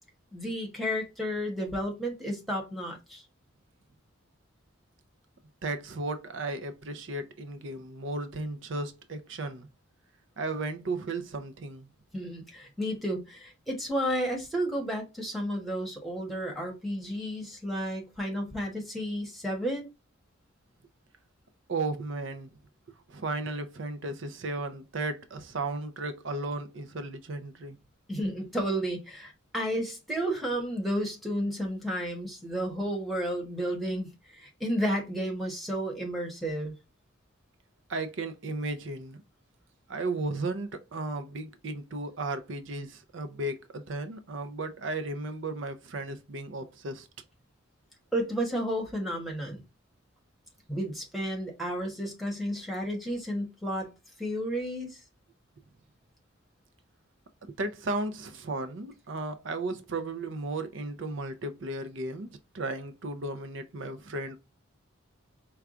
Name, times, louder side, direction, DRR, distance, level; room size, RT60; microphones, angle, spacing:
voice 1, 0.3-3.2 12.1-19.9 28.1-36.7 48.1-49.6 50.7-53.9 54.2-55.0, equal, ahead, 1.2 m, -32 dB
voice 2, 5.6-9.7 10.4-11.9 21.7-22.5 23.1-27.8 37.9-39.2 39.9-47.1 57.5-64.4, right 2 dB, 60° right, 0.5 m, -35 dB
4.6 x 2.3 x 3.6 m
head